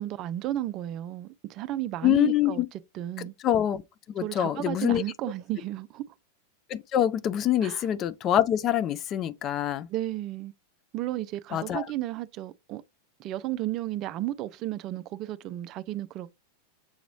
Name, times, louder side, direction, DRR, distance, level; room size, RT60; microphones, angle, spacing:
voice 1, 0.0-2.6 2.9-3.3 4.2-6.0 7.6-7.8 9.9-10.5 10.9-12.8 13.2-16.3, right 14 dB, 35° right, 0.4 m, -33 dB
voice 2, 2.0-2.7 3.2-3.8 4.1-5.0 6.7-9.9 11.5-11.9, left 11 dB, 30° left, 0.4 m, -25 dB
7.0 x 3.0 x 2.6 m
figure-of-eight pair, 90°, 0 cm